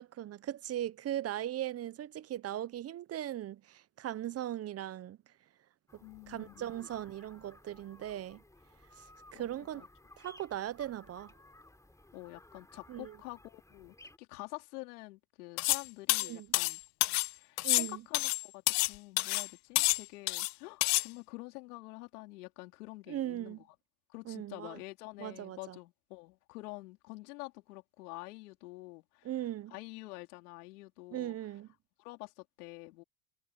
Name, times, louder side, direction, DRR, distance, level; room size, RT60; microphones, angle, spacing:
voice 1, 0.0-5.2 5.9-8.4 9.0-9.9 10.2-11.3 12.9-13.2 16.2-16.5 17.6-18.0 23.1-23.6 24.3-24.8 25.2-25.8 29.2-29.7 31.1-31.7, right 12 dB, 35° right, 0.8 m, -39 dB
sound 1, 5.9-14.2, left 2 dB, 5° left, 3.7 m, -58 dB
voice 2, 6.0-6.6 9.3-9.9 12.1-16.8 17.1-23.7 24.1-29.3 29.7-31.4 32.0-33.0, left 22 dB, 80° left, 4.1 m, -48 dB
sound 2, 15.6-17.3 17.6-18.9 19.2-19.5 19.8-20.5 20.8-21.1, left 30 dB, 60° left, 0.5 m, -29 dB
supercardioid pair, 95°, 44 cm